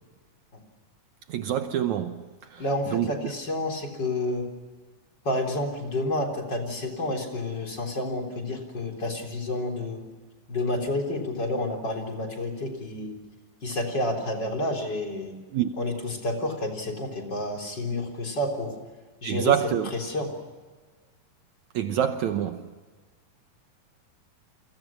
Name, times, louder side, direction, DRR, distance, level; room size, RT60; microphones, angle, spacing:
voice 1, 1.3-2.2 2.5-2.6 2.9-3.1 15.5-15.7 19.2-19.9 21.8-22.6, right 10 dB, 70° right, 2.1 m, -26 dB
voice 2, 2.6-4.5 5.2-10.0 10.5-13.2 13.6-15.4 15.8-18.8 19.2-20.3, left 1 dB, 30° left, 4.2 m, -30 dB
29.5 x 24.5 x 6.0 m
omnidirectional pair, 3.9 m